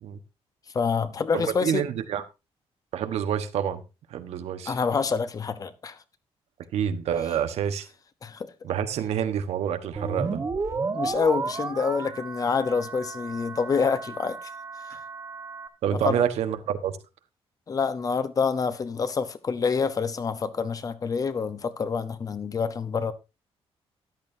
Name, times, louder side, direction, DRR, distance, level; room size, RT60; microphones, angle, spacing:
voice 1, 0.7-1.8 4.7-6.0 8.2-8.5 10.9-14.5 14.9-15.0 15.9-16.2 17.7-23.1, left 5 dB, 35° left, 1.0 m, -27 dB
voice 2, 1.3-2.2 2.9-3.8 4.1-4.7 6.7-7.9 8.6-10.4 15.8-17.0, right 9 dB, 90° right, 1.2 m, -27 dB
sound 1, 10.0-15.7, right 4 dB, 30° right, 1.3 m, -33 dB
13.5 x 11.0 x 2.7 m
cardioid pair, 155°, 11 cm